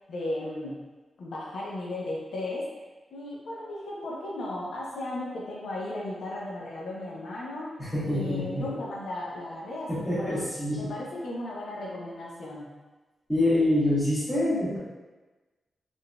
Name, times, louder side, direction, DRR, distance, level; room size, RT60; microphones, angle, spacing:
voice 1, 0.1-0.8 1.2-2.7 3.1-7.8 8.0-10.4 10.7-12.7, left 1 dB, 85° left, -4 dB, 0.5 m, -35 dB
voice 2, 7.8-8.8 9.9-10.9 13.3-14.8, left 1 dB, 10° left, -9 dB, 1.1 m, -26 dB
3.7 x 2.5 x 2.2 m, 1.2 s
wide cardioid pair, 140°, 0 cm